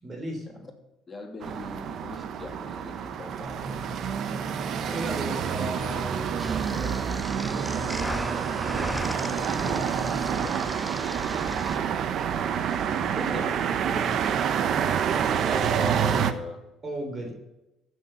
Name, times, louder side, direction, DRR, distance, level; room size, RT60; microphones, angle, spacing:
voice 1, 0.0-0.6 4.9-9.0 9.4-10.5 13.0-13.6 13.8-14.2 16.8-17.3, right 1 dB, 30° right, 3 dB, 3.5 m, -37 dB
voice 2, 1.1-3.8 9.2-10.0 10.2-10.5 13.3-13.5 15.4-16.6, left 3 dB, 25° left, 3 dB, 2.8 m, -40 dB
Residential - Traffic - Street - Close Perspective, 1.4-16.3, right 8 dB, 55° right, 1.0 m, -28 dB
sound 1, 3.4-10.7, left 2 dB, 80° right, 3.9 m, -42 dB
sound 2, 6.4-11.8, left 1 dB, 5° left, 0.6 m, -37 dB
15.0 x 6.9 x 6.9 m, 0.95 s
cardioid pair, 100°, 0 cm